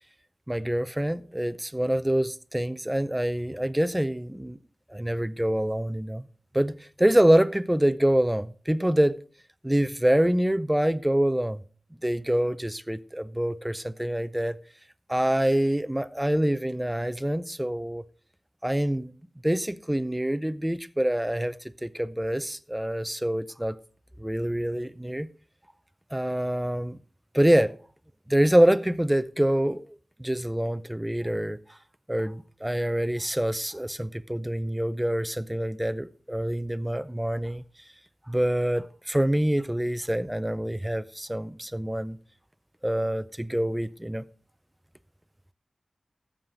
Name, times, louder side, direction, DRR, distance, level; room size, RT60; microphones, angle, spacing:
voice 1, 0.5-4.6 4.9-6.2 6.5-9.2 9.6-11.6 12.0-14.6 15.1-18.0 18.6-19.1 19.4-21.6 21.8-23.8 24.2-25.3 26.1-27.0 27.3-27.7 28.3-31.6 32.1-37.6 38.3-42.2 42.8-44.2, right 1 dB, 10° right, 0.5 m, -26 dB
13.5 x 7.4 x 3.9 m
wide cardioid pair, 90°, 0 cm